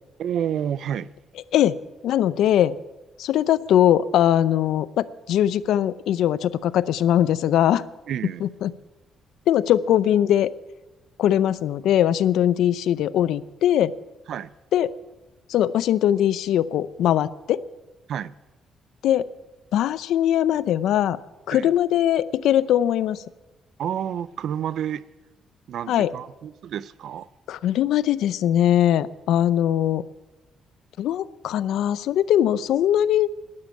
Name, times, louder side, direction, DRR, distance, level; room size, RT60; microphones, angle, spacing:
voice 1, 0.2-1.1 8.1-8.5 14.3-14.5 18.1-18.3 21.5-21.7 23.8-25.0 25.7-27.3, right 9 dB, 60° right, 18 dB, 0.5 m, -29 dB
voice 2, 2.0-2.8 3.2-7.8 8.4-8.7 9.5-10.5 11.2-13.9 14.7-14.9 15.5-17.6 19.0-19.3 19.7-21.2 21.5-23.2 25.9-26.1 27.5-30.0 31.0-33.3, left 11 dB, 80° left, 17 dB, 0.5 m, -21 dB
12.5 x 10.5 x 9.1 m, 1.1 s
cardioid pair, 145°, 0 cm